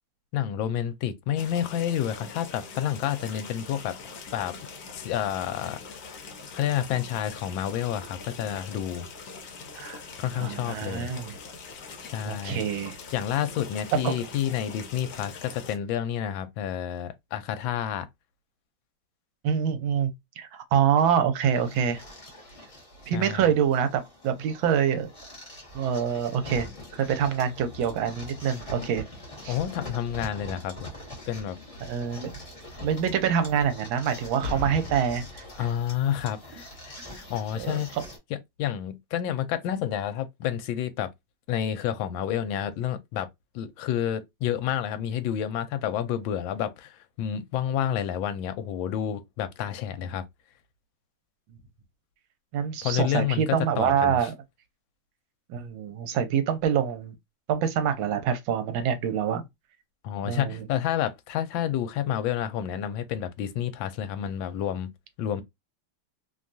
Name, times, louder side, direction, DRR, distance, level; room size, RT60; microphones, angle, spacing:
voice 1, 0.3-4.0 4.3-4.5 4.9-6.1 6.5-9.1 10.2-11.1 12.0-12.6 13.1-18.1 23.1-23.5 29.5-30.7 31.3-31.6 35.6-38.0 38.6-41.1 41.5-43.3 43.5-50.2 52.8-53.4 53.8-54.2 60.0-64.9 65.2-65.4, left 10 dB, 80° left, 1.3 m, -29 dB
sound 1, 1.4-15.8, left 4 dB, 60° left, 1.0 m, -43 dB
voice 2, 10.3-11.4 12.2-13.0 14.0-14.3 19.4-20.1 20.4-22.0 23.1-25.1 25.7-26.7 26.9-29.0 29.4-29.6 31.9-32.3 32.8-35.4 37.0-37.1 37.5-38.1 52.5-54.3 55.5-57.2 57.5-59.4 60.2-60.6, right 8 dB, 80° right, 1.4 m, -26 dB
sound 2, 21.5-38.2, left 1 dB, 25° left, 0.9 m, -43 dB
Boom, 34.4-36.2 37.0-37.3, left 2 dB, 55° right, 0.9 m, -37 dB
3.2 x 2.3 x 2.5 m
omnidirectional pair, 2.2 m